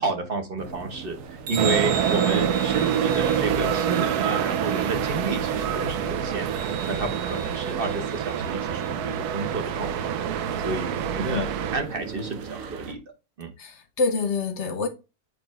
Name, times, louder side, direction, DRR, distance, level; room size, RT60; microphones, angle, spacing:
voice 1, 0.0-11.5 11.7-13.0 13.4-13.5, right 3 dB, 40° right, 1.2 m, -31 dB
sound 1, 0.6-12.9, right 6 dB, 65° right, 1.1 m, -36 dB
sound 2, 1.6-11.8, right 8 dB, 90° right, 1.2 m, -26 dB
voice 2, 13.6-14.9, left 4 dB, 55° left, 1.0 m, -26 dB
7.0 x 3.4 x 4.5 m
omnidirectional pair, 1.6 m